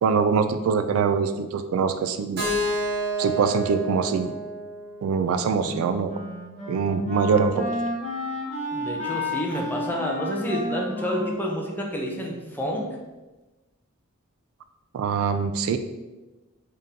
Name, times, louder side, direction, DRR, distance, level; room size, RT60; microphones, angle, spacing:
voice 1, 0.0-2.4 3.2-4.4 5.0-6.1 6.7-7.7 14.9-15.8, right 5 dB, 85° right, 10 dB, 0.3 m, -23 dB
Keyboard (musical), 2.4-6.3, right 1 dB, 50° right, 1.3 m, -30 dB
Wind instrument woodwind instrument, 5.6-12.8, left 1 dB, 35° left, 0.9 m, -32 dB
voice 2, 8.7-12.9, equal, 10° left, -1 dB, 0.6 m, -29 dB
3.7 x 3.6 x 2.7 m, 1.1 s
head